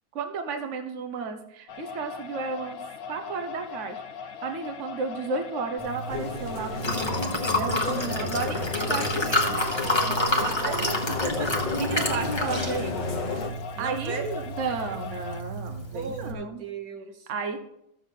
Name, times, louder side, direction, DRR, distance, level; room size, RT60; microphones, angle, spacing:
voice 1, 0.1-2.8 3.1-4.0 4.4-11.0 11.8-13.0 13.3-13.5 13.8-16.6 17.3-17.6, right 4 dB, 55° right, 6 dB, 1.2 m, -33 dB
sound 1, 1.7-15.4, left 6 dB, 70° left, 1.2 m, -40 dB
Liquid, 5.8-16.3, left 1 dB, 20° left, 1.3 m, -30 dB
sound 2, 6.1-13.5, left 3 dB, 35° left, 0.9 m, -32 dB
voice 2, 10.2-11.5 11.9-12.1 13.8-14.4 15.9-17.3, right 4 dB, 70° right, 5 dB, 1.5 m, -36 dB
14.0 x 7.3 x 3.8 m, 0.80 s
omnidirectional pair, 1.6 m